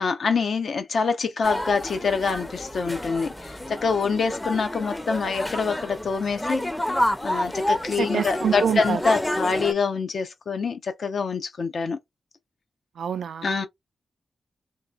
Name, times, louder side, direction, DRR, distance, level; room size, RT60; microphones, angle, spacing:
voice 1, 0.0-6.6 7.2-12.0 13.4-13.7, left 5 dB, 70° left, 0.7 m, -25 dB
sound 1, 1.4-9.7, left 1 dB, 10° left, 0.5 m, -29 dB
voice 2, 8.0-9.0 13.0-13.5, right 7 dB, 85° right, 0.3 m, -26 dB
2.9 x 2.3 x 2.4 m
cardioid pair, 65°, 0 cm